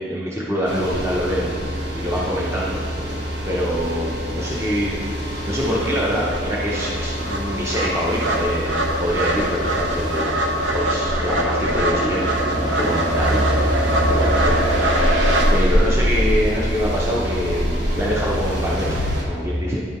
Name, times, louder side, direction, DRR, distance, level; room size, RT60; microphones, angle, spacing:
voice 1, 0.0-2.8 3.4-10.4 10.7-12.3 12.6-13.6 13.9-14.5 15.5-19.0 19.3-19.8, equal, 15° right, -5 dB, 0.7 m, -25 dB
sound 1, 0.6-19.2, equal, 60° right, 1.2 m, -25 dB
sound 2, 5.4-5.5 5.8-15.5, right 1 dB, 85° right, 0.9 m, -23 dB
Fixed-wing aircraft airplane, 13.7-19.2, left 3 dB, 80° left, 0.4 m, -33 dB
10.5 x 3.8 x 4.3 m, 2.1 s
head